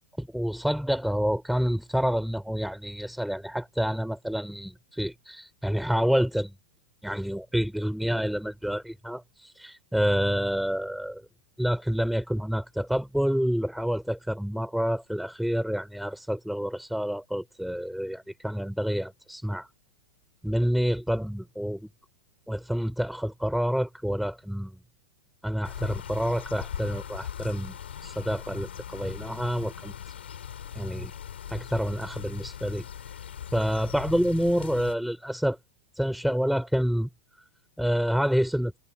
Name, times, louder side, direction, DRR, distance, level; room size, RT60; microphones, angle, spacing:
voice 1, 0.2-6.5 7.0-11.2 11.6-19.7 20.4-21.9 22.5-24.7 25.4-27.7 28.0-29.9 30.7-31.1 31.5-32.8 33.5-35.6 36.0-37.1 37.8-38.7, equal, ahead, 5.1 m, -28 dB
sound 1, 25.6-35.0, left 9 dB, 85° left, 7.3 m, -40 dB
hypercardioid pair, 110°, 6 cm